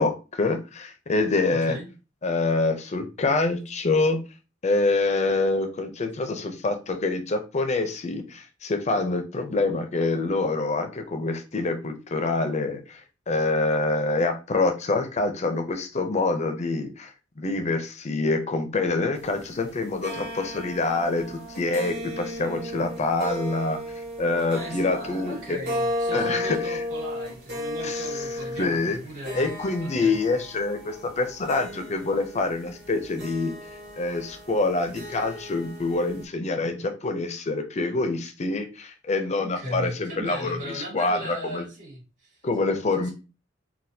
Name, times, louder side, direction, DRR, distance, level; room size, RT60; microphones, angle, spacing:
voice 1, 0.0-1.8 2.2-4.2 4.6-13.0 13.3-17.1 17.4-23.8 24.2-25.6 26.1-26.8 27.8-28.2 28.6-29.0 29.3-33.5 34.0-41.6 42.4-43.1, left 3 dB, 35° left, 6 dB, 0.5 m, -26 dB
voice 2, 1.5-1.9 24.5-29.5 29.8-30.2 39.4-42.4 43.0-43.1, equal, 40° right, -3 dB, 1.9 m, -37 dB
sound 1, 19.1-36.2, left 1 dB, 55° right, 1.2 m, -35 dB
4.1 x 2.3 x 2.6 m, 0.30 s
head